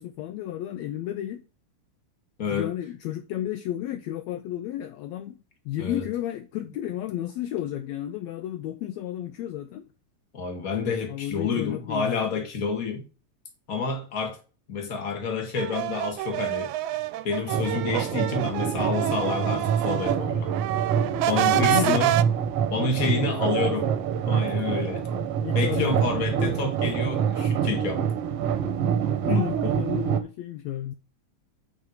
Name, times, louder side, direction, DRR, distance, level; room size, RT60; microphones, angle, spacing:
voice 1, 0.0-1.4 2.5-5.4 5.7-9.9 11.1-12.4 21.5-22.1 23.1-23.7 25.4-26.0 29.2-30.9, left 12 dB, 75° left, 1.7 m, -32 dB
voice 2, 2.4-2.7 5.8-6.1 10.3-13.0 13.7-14.4 14.7-16.7 17.2-20.5 21.3-22.2 22.7-23.9 24.2-25.1 25.5-28.1, left 4 dB, 35° left, 1.9 m, -29 dB
sound 1, 15.6-20.2 20.5-22.2, right 15 dB, 85° right, 1.9 m, -27 dB
sound 2, 17.5-30.2, right 8 dB, 65° right, 1.7 m, -26 dB
5.8 x 5.6 x 6.4 m
omnidirectional pair, 3.4 m